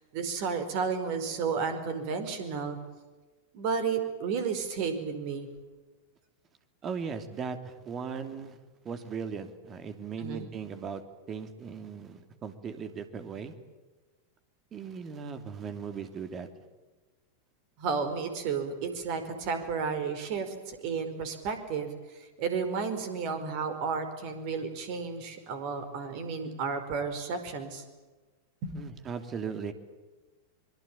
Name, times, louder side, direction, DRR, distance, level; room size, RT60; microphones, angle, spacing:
voice 1, 0.1-2.8 3.5-5.5 10.2-10.5 17.8-27.8 28.6-28.8, right 5 dB, 45° right, 9 dB, 5.0 m, -32 dB
voice 2, 6.8-8.6 8.8-11.0 11.3-13.5 14.7-16.5 28.7-29.7, right 6 dB, 25° right, 9 dB, 2.9 m, -38 dB
25.5 x 23.5 x 8.8 m, 1.2 s
figure-of-eight pair, 90°, 0 cm